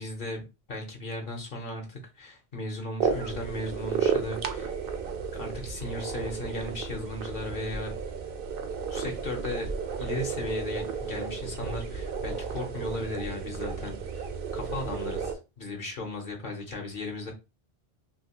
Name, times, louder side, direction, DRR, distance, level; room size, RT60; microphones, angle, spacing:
voice 1, 0.0-4.7 5.3-8.0 8.9-9.7 10.0-14.3 14.5-17.3, left 2 dB, 55° left, 0.9 m, -36 dB
sound 1, 3.0-15.3, right 6 dB, 65° right, 0.7 m, -33 dB
2.8 x 2.7 x 2.8 m
omnidirectional pair, 1.1 m